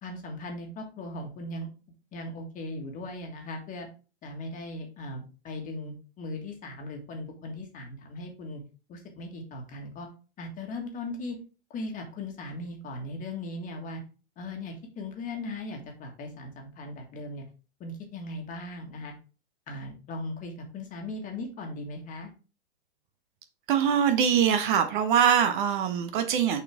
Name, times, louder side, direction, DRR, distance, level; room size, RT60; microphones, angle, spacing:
voice 1, 0.0-1.7 2.1-3.9 4.2-8.6 8.9-10.1 10.4-11.4 11.7-14.0 14.4-17.4 17.8-19.1 19.7-22.3, left 2 dB, 25° left, 1.6 m, -38 dB
voice 2, 23.7-26.6, right 8 dB, 45° right, 0.9 m, -23 dB
6.6 x 4.2 x 3.5 m
hypercardioid pair, 130°, 34 cm